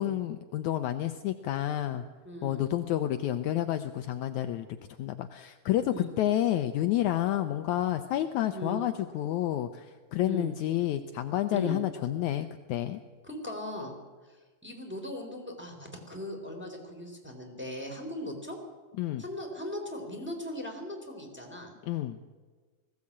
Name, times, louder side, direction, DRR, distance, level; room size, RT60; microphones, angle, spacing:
voice 1, 0.0-2.0 2.4-4.7 5.0-13.0 19.0-19.2 21.9-22.2, left 13 dB, 85° left, 9 dB, 1.6 m, -29 dB
voice 2, 2.2-2.6 5.9-6.1 8.5-8.8 10.2-10.5 11.5-11.8 13.2-13.9 14.6-18.6 19.2-21.7, left 1 dB, 5° right, 1 dB, 3.2 m, -38 dB
20.0 x 16.0 x 8.7 m, 1.4 s
omnidirectional pair, 4.3 m